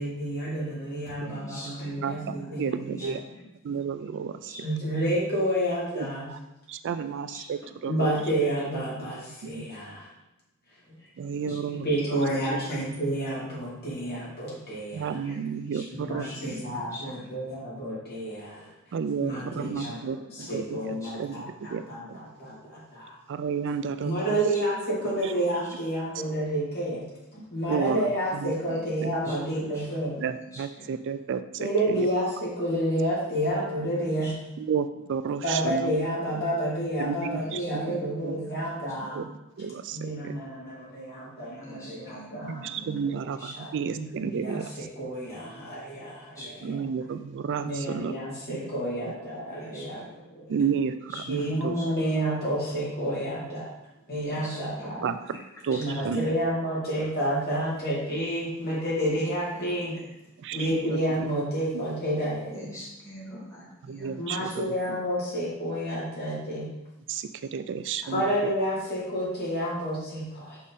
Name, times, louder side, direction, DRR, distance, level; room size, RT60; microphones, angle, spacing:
voice 1, 0.0-2.9 4.6-6.3 7.8-10.1 11.7-15.2 16.0-18.7 19.2-20.0 20.5-22.0 22.4-23.2 24.0-27.0 27.3-30.1 31.6-34.3 35.4-39.2 39.9-42.8 43.0-43.1 43.6-44.6 45.0-46.8 47.6-50.0 50.3-50.5 51.3-53.7 54.1-55.1 55.8-59.9 60.5-62.7 63.3-63.4 64.2-66.7 68.1-70.6, right 1 dB, 45° left, -6 dB, 2.8 m, -30 dB
voice 2, 1.2-3.1 3.6-3.8 4.5-4.6 6.9-7.0 7.3-7.4 8.0-8.1 11.0-11.1 11.5-11.6 11.9-12.0 12.6-12.7 15.2-15.4 15.7-16.5 16.8-17.3 19.3-20.5 21.0-21.3 24.8-24.9 25.3-25.4 28.7-28.8 29.2-30.2 30.5-30.9 33.9-34.3 37.4-38.8 41.6-43.0 43.4-43.5 46.4-46.7 49.6-50.2 50.5-50.6 51.1-51.2 51.8-51.9 54.3-55.4 55.7-55.8 59.1-59.2 59.5-60.1 62.5-64.1 64.4-64.5 68.0-68.1, equal, 15° left, -6 dB, 2.2 m, -45 dB
voice 3, 2.0-3.2 3.6-4.5 5.9-6.4 6.7-8.1 9.4-9.7 11.2-12.2 12.4-12.6 14.9-16.3 16.7-16.9 18.9-22.2 23.3-24.4 25.2-25.3 27.7-28.5 29.0-29.1 30.2-32.1 34.6-36.0 37.0-38.4 39.1-39.3 39.6-40.3 42.4-44.9 46.6-48.1 48.5-48.7 50.5-51.7 55.0-55.4 55.6-56.4 60.4-61.0 61.7-61.8 62.2-62.3 63.8-65.0 67.1-68.5, right 6 dB, 55° right, 11 dB, 0.3 m, -32 dB
6.2 x 5.6 x 4.1 m, 0.94 s
head